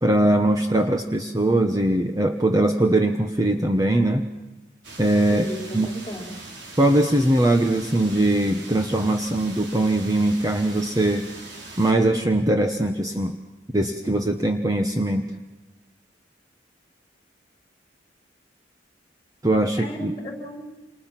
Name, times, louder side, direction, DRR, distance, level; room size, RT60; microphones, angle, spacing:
voice 1, 0.0-4.3 5.0-5.4 5.7-5.9 6.8-11.3 11.8-13.4 13.7-15.2 19.4-20.1, right 1 dB, 20° right, 4 dB, 1.2 m, -21 dB
sound 1, 4.8-11.9, right 2 dB, 65° right, 4.2 m, -41 dB
voice 2, 5.3-6.3 19.8-20.7, equal, 20° left, 1 dB, 4.9 m, -34 dB
29.0 x 27.5 x 6.0 m, 1.1 s
head